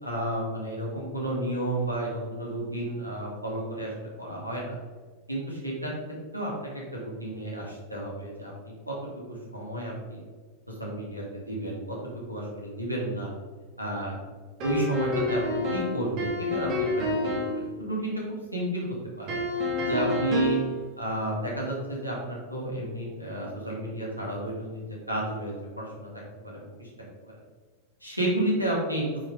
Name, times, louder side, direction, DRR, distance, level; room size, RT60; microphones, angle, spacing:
voice 1, 0.0-3.9 4.2-4.7 5.3-5.9 6.3-6.5 6.9-8.9 9.3-10.2 10.7-11.8 12.3-13.3 13.8-14.2 14.6-18.9 19.2-19.4 19.8-20.6 21.0-26.1 26.4-26.9 27.2-27.4 28.0-29.0, right 1 dB, 90° right, -4 dB, 2.3 m, -31 dB
sound 1, 14.6-17.6 19.3-20.7, left 1 dB, 40° right, 2.3 m, -28 dB
8.7 x 5.7 x 3.4 m, 1.4 s
figure-of-eight pair, 90°, 0 cm